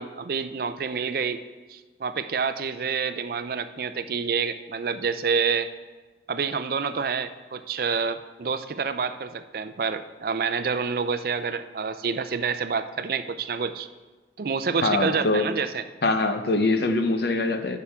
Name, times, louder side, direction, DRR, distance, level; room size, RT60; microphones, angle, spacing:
voice 1, 0.0-1.4 1.7-5.7 6.3-13.9 14.4-15.8, right 5 dB, 55° right, 11 dB, 0.4 m, -28 dB
voice 2, 14.8-15.4 16.0-17.8, left 2 dB, 60° left, 7 dB, 0.8 m, -23 dB
14.0 x 6.9 x 3.6 m, 1.3 s
head